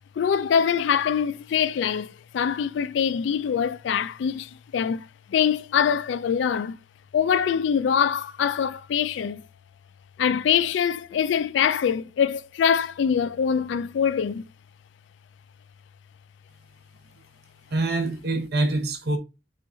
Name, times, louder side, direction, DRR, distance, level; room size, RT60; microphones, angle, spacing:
voice 1, 0.2-5.0 5.3-6.8 7.1-9.4 10.2-14.4, left 7 dB, 80° left, 0.3 m, -24 dB
voice 2, 17.7-19.2, right 2 dB, 55° right, 0.8 m, -25 dB
5.6 x 2.5 x 3.7 m
head